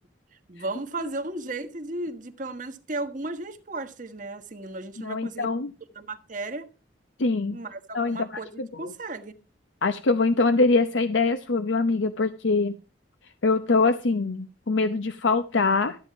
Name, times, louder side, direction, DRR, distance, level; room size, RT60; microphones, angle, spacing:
voice 1, 0.5-5.5 5.9-6.7 7.5-8.5 8.8-9.3, right 2 dB, 40° right, 1.3 m, -35 dB
voice 2, 5.0-5.7 7.2-7.6 7.9-8.3 8.6-8.9 9.8-12.8 13.4-16.0, left 3 dB, 75° left, 0.8 m, -23 dB
13.5 x 8.9 x 4.6 m
head